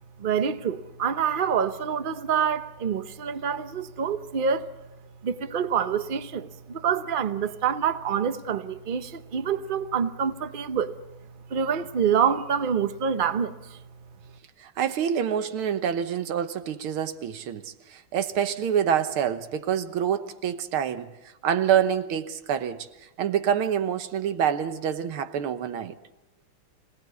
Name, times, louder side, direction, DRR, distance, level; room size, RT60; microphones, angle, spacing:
voice 1, 0.2-4.7 5.2-10.9 11.5-13.8, right 7 dB, 55° right, 0.5 m, -26 dB
voice 2, 14.6-21.1 21.4-22.9 23.2-26.0, right 8 dB, 85° right, 1.9 m, -26 dB
25.5 x 18.5 x 8.3 m
omnidirectional pair, 2.3 m